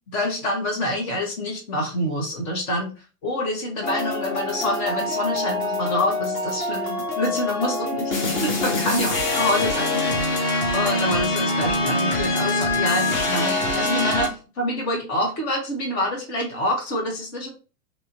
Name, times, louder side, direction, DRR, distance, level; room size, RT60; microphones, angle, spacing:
voice 1, 0.1-2.9 3.2-17.5, left 1 dB, 45° left, 1 dB, 1.3 m, -27 dB
sound 1, 3.8-14.3, left 2 dB, 25° left, 1.0 m, -24 dB
3.0 x 3.0 x 2.6 m, 0.33 s
figure-of-eight pair, 100°, 46 cm